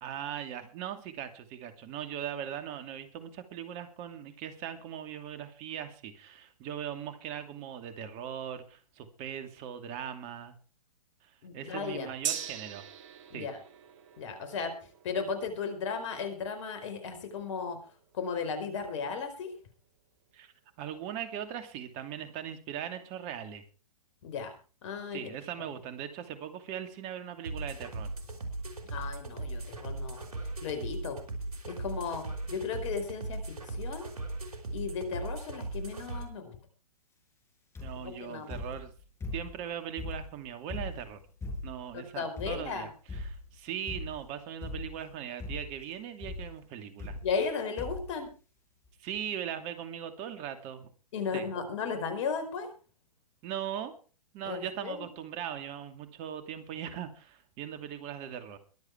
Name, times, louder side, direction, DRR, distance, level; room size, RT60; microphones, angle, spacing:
voice 1, 0.0-10.5 11.2-12.8 13.3-13.5 20.3-23.6 25.1-28.1 37.8-38.9 39.3-41.2 41.6-47.2 49.0-50.9 51.3-51.5 53.4-53.9 54.3-58.6, right 9 dB, 35° right, 9 dB, 2.6 m, -39 dB
voice 2, 11.4-12.1 13.3-13.6 14.2-14.7 15.0-17.8 18.1-19.5 24.2-24.5 24.8-25.3 25.7-25.8 28.9-30.2 30.6-31.2 31.6-34.1 34.7-36.5 38.0-38.6 41.9-42.9 47.2-48.3 51.1-52.7 54.4-55.1, left 5 dB, 50° left, 7 dB, 4.6 m, -35 dB
Gong, 12.2-20.0 20.3-20.4, right 9 dB, 50° right, 2.2 m, -43 dB
sound 1, 27.4-36.3, right 2 dB, 80° right, 4.8 m, -38 dB
sound 2, 37.8-38.1 38.5-39.6 40.0-41.9 42.4-42.8 43.1-43.5 43.9-44.3 44.6-45.1 45.4-45.8 46.2-46.5 47.0-47.5 47.8-48.1 48.9-49.0 49.2-49.3, left 2 dB, 15° left, 6.2 m, -39 dB
23.0 x 8.2 x 4.7 m, 0.37 s
hypercardioid pair, 125°, 19 cm